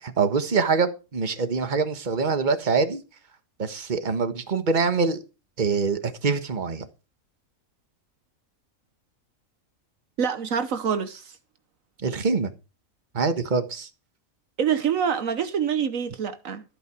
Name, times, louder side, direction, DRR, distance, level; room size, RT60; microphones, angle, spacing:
voice 1, 0.0-3.0 3.6-5.2 5.6-6.9 12.0-12.5 13.1-13.9, right 4 dB, 35° right, 1.5 m, -24 dB
voice 2, 10.2-11.3 14.6-16.6, right 7 dB, 70° right, 1.3 m, -26 dB
14.0 x 9.1 x 4.8 m
omnidirectional pair, 1.5 m